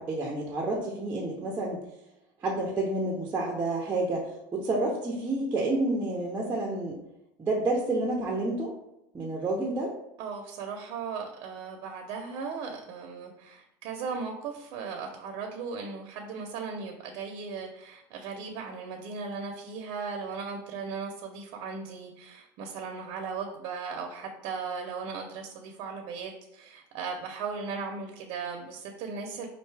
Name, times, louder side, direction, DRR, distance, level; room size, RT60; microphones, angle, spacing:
voice 1, 0.0-1.8 2.4-7.0 7.4-8.7 9.1-9.9, right 2 dB, 20° right, -3 dB, 0.7 m, -29 dB
voice 2, 10.2-29.5, right 5 dB, 60° right, 2 dB, 0.7 m, -37 dB
5.4 x 2.6 x 3.3 m, 0.85 s
cardioid pair, 155°, 10 cm